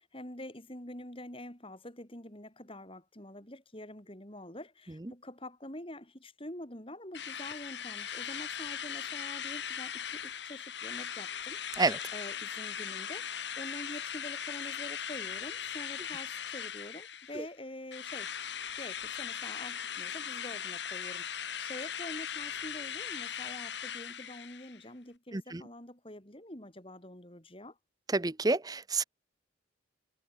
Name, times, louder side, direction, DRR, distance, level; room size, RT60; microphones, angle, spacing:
voice 1, 0.0-11.8 12.1-18.3 18.8-27.8, left 1 dB, 30° left, 4.2 m, -46 dB
Drill, 7.1-17.5 17.9-24.8, left 8 dB, 65° left, 2.9 m, -39 dB
voice 2, 28.1-29.0, right 3 dB, 20° right, 0.6 m, -29 dB
head